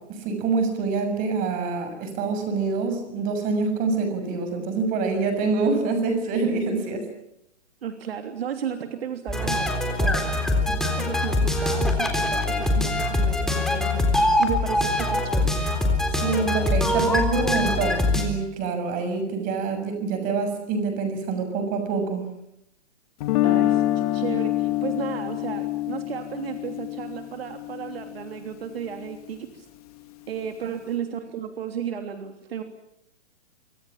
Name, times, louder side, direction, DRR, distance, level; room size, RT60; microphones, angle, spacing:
voice 1, 0.0-7.0 10.0-10.2 16.2-22.2, right 4 dB, 25° right, 7 dB, 6.7 m, -26 dB
voice 2, 7.8-10.4 10.9-15.8 23.4-29.7 30.3-32.6, right 8 dB, 60° right, 6 dB, 3.2 m, -34 dB
sound 1, 9.3-18.2, left 2 dB, ahead, 3.8 m, -23 dB
Guitar, 23.2-29.2, left 15 dB, 35° left, 2.4 m, -26 dB
28.5 x 26.0 x 7.4 m, 0.81 s
hypercardioid pair, 155°, 34 cm